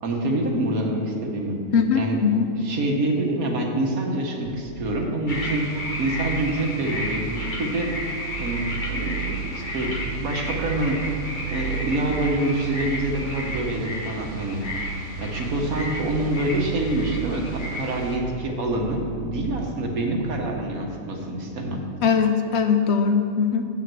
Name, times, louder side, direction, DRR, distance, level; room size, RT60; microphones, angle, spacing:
voice 1, 0.0-1.6 1.9-2.2 2.5-5.7 6.0-7.9 8.4-11.1 11.5-14.6 15.2-21.8, right 1 dB, 90° right, 1 dB, 1.7 m, -26 dB
voice 2, 1.7-2.5 22.0-23.7, left 6 dB, 60° left, 6 dB, 0.8 m, -21 dB
sound 1, 4.4-20.5, right 10 dB, 75° right, 0.9 m, -35 dB
sound 2, 5.3-18.2, left 1 dB, 40° left, 1.1 m, -33 dB
8.2 x 5.7 x 7.7 m, 2.8 s
omnidirectional pair, 1.4 m